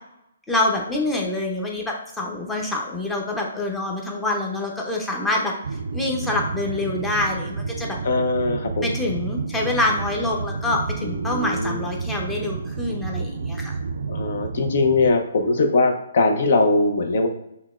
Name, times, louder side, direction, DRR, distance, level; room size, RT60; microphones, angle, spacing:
voice 1, 0.5-5.5 5.9-8.0 8.8-13.8, left 2 dB, 5° left, -1 dB, 0.6 m, -26 dB
sound 1, 5.6-15.1, right 4 dB, 75° right, 0.4 m, -30 dB
voice 2, 8.0-8.9 11.0-11.8 14.1-17.3, left 3 dB, 60° left, 4 dB, 0.6 m, -21 dB
5.6 x 2.1 x 2.4 m, 0.84 s
hypercardioid pair, 155°, 0 cm